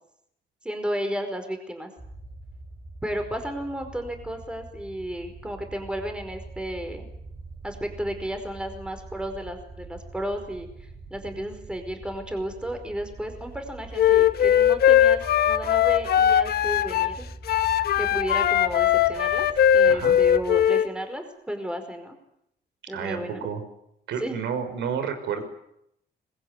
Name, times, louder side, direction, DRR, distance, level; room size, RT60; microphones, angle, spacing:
voice 1, 0.6-1.9 3.0-7.1 7.6-17.2 18.0-19.5 19.7-22.2 22.9-23.4 24.2-24.4, equal, 5° right, 6 dB, 5.0 m, -33 dB
sound 1, 2.0-20.7, right 2 dB, 20° right, 5.0 m, -43 dB
Wind instrument woodwind instrument, 14.0-17.2 17.5-20.9, left 10 dB, 60° left, 1.4 m, -20 dB
voice 2, 22.9-23.6 24.1-25.4, right 7 dB, 85° right, 8 dB, 6.1 m, -30 dB
25.0 x 21.0 x 9.8 m, 0.77 s
cardioid pair, 150°, 18 cm